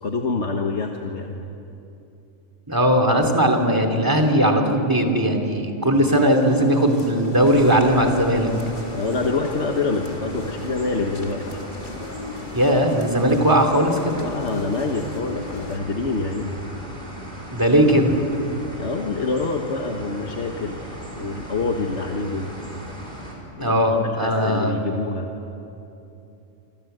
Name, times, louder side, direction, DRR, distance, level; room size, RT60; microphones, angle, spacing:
voice 1, 0.0-1.4 8.9-11.4 14.1-16.6 18.8-20.8 21.2-22.5 23.6-25.3, left 3 dB, 60° left, 2 dB, 1.8 m, -26 dB
voice 2, 2.7-8.5 12.5-14.2 17.5-18.2 23.6-24.8, equal, 15° right, 4 dB, 2.9 m, -18 dB
sound 1, 6.1-15.8, left 4 dB, 40° left, 1.8 m, -37 dB
sound 2, 7.4-23.4, equal, 40° right, 5.5 m, -38 dB
27.5 x 26.0 x 8.0 m, 2.8 s
omnidirectional pair, 1.4 m